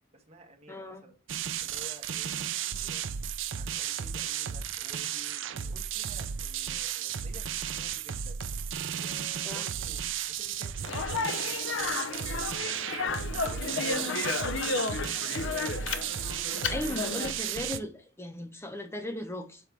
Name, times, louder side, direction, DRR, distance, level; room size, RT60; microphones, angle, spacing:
voice 1, 0.1-1.2 1.6-3.1 3.5-8.4 9.0-10.0 10.3-12.8 13.3-15.8 16.6-17.0, right 1 dB, 35° right, 1.7 m, -52 dB
voice 2, 0.7-1.0 9.4-9.6 16.7-19.6, left 1 dB, 15° left, 0.9 m, -37 dB
sound 1, 1.3-17.8, right 9 dB, 90° right, 0.5 m, -34 dB
Speech, 10.8-17.3, left 4 dB, 85° left, 0.7 m, -32 dB
6.9 x 4.4 x 4.6 m
head